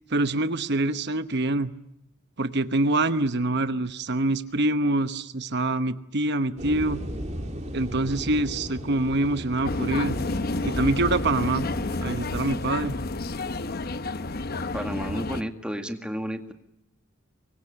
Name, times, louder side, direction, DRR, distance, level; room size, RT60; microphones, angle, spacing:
voice 1, 0.1-1.7 2.4-7.0 7.7-10.2 10.6-11.7 12.0-13.0, right 2 dB, 55° right, 10 dB, 1.0 m, -25 dB
sound 1, 6.6-12.1, equal, 35° right, 4.0 m, -37 dB
sound 2, 9.6-15.4, left 2 dB, 50° left, 0.9 m, -30 dB
voice 2, 14.7-16.5, equal, 5° right, 5 dB, 2.0 m, -32 dB
25.0 x 22.5 x 9.8 m, 0.82 s
head